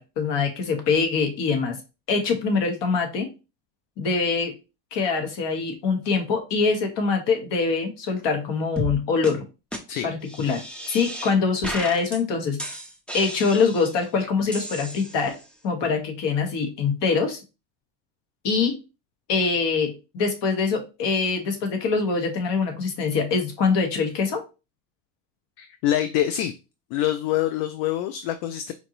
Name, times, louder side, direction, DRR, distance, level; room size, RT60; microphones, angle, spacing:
voice 1, 0.0-1.8 2.1-3.3 4.0-4.5 4.9-9.4 10.0-10.6 10.9-12.8 13.1-15.4 15.6-17.4 18.4-18.8 19.3-24.4, left 5 dB, 55° left, 5 dB, 1.4 m, -24 dB
sound 1, 8.8-9.0 9.2-9.3 9.7-9.8 10.2-11.3 11.6-12.2 12.6-14.0 14.5-15.5, right 1 dB, 5° left, 0.3 m, -34 dB
voice 2, 25.6-26.5 26.9-28.7, left 12 dB, 75° left, 10 dB, 0.6 m, -25 dB
4.4 x 2.7 x 2.9 m, 0.29 s
supercardioid pair, 100°, 50 cm